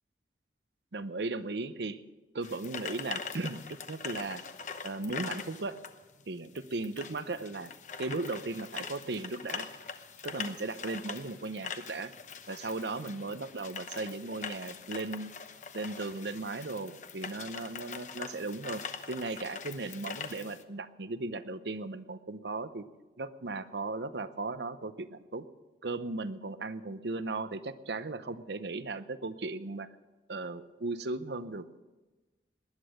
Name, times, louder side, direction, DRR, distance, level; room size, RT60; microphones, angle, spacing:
voice 1, 0.9-2.0 2.3-3.6 3.9-4.4 4.8-5.8 6.3-7.7 8.0-9.7 10.2-12.1 12.5-15.3 15.7-18.8 19.1-22.8 23.2-25.4 25.8-29.9 30.3-31.7, right 3 dB, 75° right, 13 dB, 0.8 m, -36 dB
sound 1, 2.4-20.6, left 6 dB, 45° left, 0.9 m, -43 dB
19.5 x 11.0 x 6.4 m, 1.2 s
head